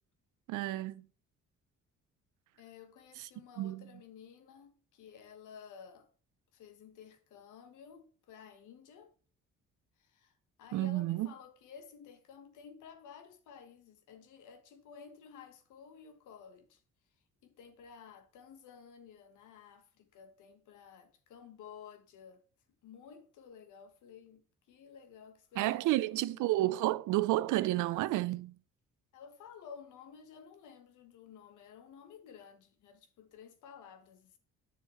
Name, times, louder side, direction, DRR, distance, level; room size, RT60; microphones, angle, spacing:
voice 1, 0.5-1.0 3.6-3.8 10.7-11.3 25.6-28.6, right 16 dB, 85° right, 0.5 m, -31 dB
voice 2, 2.6-6.1 6.5-9.1 10.0-16.8 17.4-22.4 22.8-26.4 29.1-34.4, left 7 dB, 80° left, 1.2 m, -53 dB
7.5 x 6.8 x 3.0 m
cardioid pair, 90°, 30 cm